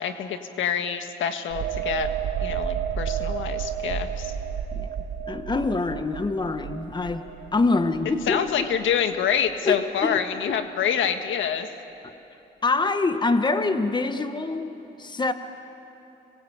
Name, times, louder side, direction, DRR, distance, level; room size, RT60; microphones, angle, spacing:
voice 1, 0.0-2.1 2.4-4.3 8.3-11.7, left 8 dB, 75° left, 7 dB, 1.6 m, -26 dB
sound 1, 1.5-8.9 9.3-9.5, right 8 dB, 85° right, 2.0 m, -31 dB
voice 2, 5.3-7.2 7.5-8.4 9.7-10.2 12.6-15.3, left 3 dB, 20° left, 9 dB, 1.3 m, -25 dB
27.5 x 20.5 x 8.8 m, 2.9 s
cardioid pair, 90°, 20 cm